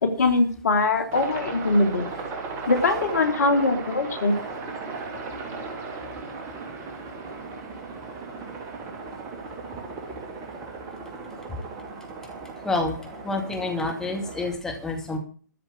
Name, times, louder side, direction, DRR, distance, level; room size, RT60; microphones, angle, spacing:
voice 1, 0.0-2.1 2.7-4.3, left 3 dB, 55° left, 6 dB, 2.9 m, -22 dB
Aircraft, 1.1-14.5, right 4 dB, 20° right, 2.7 m, -36 dB
voice 2, 12.6-13.0 13.2-15.2, left 2 dB, 5° left, 1 dB, 2.3 m, -28 dB
13.5 x 5.9 x 8.6 m, 0.41 s
figure-of-eight pair, 125°, 10 cm